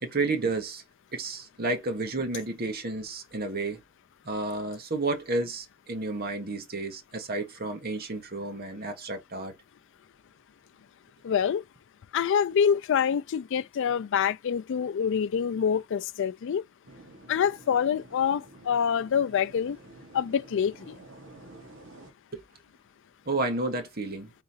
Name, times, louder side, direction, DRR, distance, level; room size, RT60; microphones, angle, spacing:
voice 1, 0.0-0.8 1.1-3.8 4.2-9.5 22.3-22.4 23.3-24.3, right 2 dB, 45° right, 1.1 m, -31 dB
voice 2, 11.2-11.6 12.1-16.6 17.3-19.8 20.1-20.9, left 7 dB, 60° left, 0.3 m, -26 dB
sound 1, 16.8-22.1, right 2 dB, 65° right, 1.5 m, -50 dB
3.9 x 3.8 x 2.8 m
head